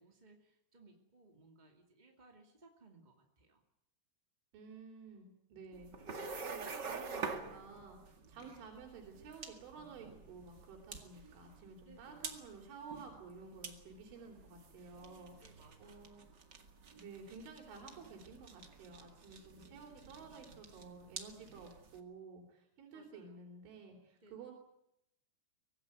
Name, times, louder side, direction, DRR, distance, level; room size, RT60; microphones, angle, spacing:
voice 1, 0.0-3.6 11.8-12.4 14.9-16.4 22.9-23.7 24.2-24.4, right 2 dB, 20° right, 2 dB, 1.1 m, -63 dB
voice 2, 4.5-5.9 6.4-15.5 15.8-16.3 16.9-24.5, right 4 dB, 85° right, 1 dB, 6.0 m, -52 dB
sound 1, 5.7-22.0, right 4 dB, 45° right, 1.3 m, -48 dB
24.0 x 18.5 x 9.4 m, 0.82 s
omnidirectional pair, 5.3 m